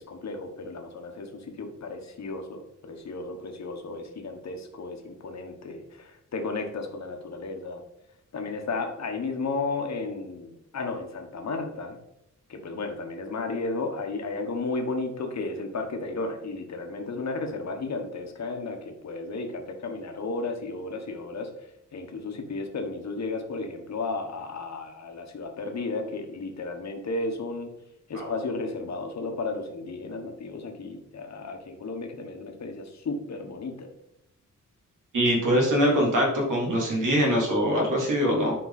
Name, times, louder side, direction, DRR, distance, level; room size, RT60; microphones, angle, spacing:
voice 1, 0.0-7.8 8.3-12.0 12.5-21.5 21.9-27.7 28.1-33.9, left 3 dB, 60° left, 4 dB, 1.4 m, -33 dB
voice 2, 35.1-38.6, equal, 80° right, -2 dB, 3.5 m, -23 dB
10.0 x 5.3 x 4.2 m, 0.81 s
wide cardioid pair, 170°, 31 cm